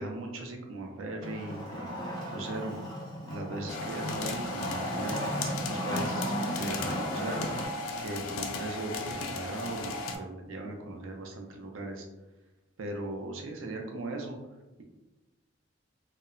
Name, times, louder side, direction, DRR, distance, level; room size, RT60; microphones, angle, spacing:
voice 1, 0.0-2.8 3.2-7.4 8.0-12.1 12.8-14.4, right 2 dB, 75° right, 3 dB, 0.5 m, -39 dB
Wood, 1.2-7.7, equal, 20° left, 0.5 m, -35 dB
sound 1, 3.7-10.2, left 3 dB, 80° left, 0.3 m, -36 dB
2.8 x 2.0 x 2.4 m, 1.1 s
head